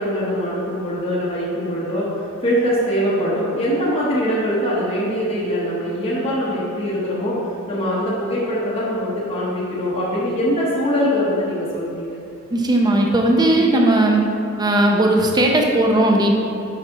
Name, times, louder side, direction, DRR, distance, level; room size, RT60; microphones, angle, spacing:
voice 1, 0.0-7.4 7.7-12.2, equal, 30° left, -9 dB, 1.0 m, -22 dB
voice 2, 12.5-14.2 14.6-16.3, right 1 dB, 20° right, 0 dB, 0.6 m, -17 dB
5.8 x 5.6 x 3.9 m, 2.6 s
head